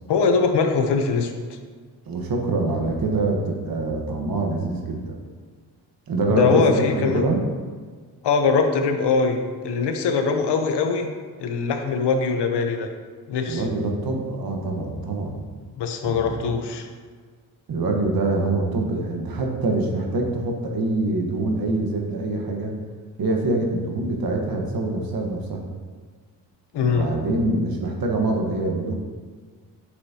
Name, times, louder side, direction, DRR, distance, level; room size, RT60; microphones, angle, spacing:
voice 1, 0.1-1.3 6.3-7.3 8.2-11.1 11.4-12.9 13.3-13.6 15.8-16.9 26.7-27.1, left 5 dB, 70° left, 5 dB, 0.9 m, -22 dB
voice 2, 2.1-5.1 6.1-7.4 13.5-15.4 16.0-16.5 17.7-22.7 23.2-25.6 26.8-28.9, right 2 dB, 55° right, 1 dB, 1.4 m, -25 dB
8.2 x 6.5 x 2.9 m, 1.5 s
supercardioid pair, 60°, 42 cm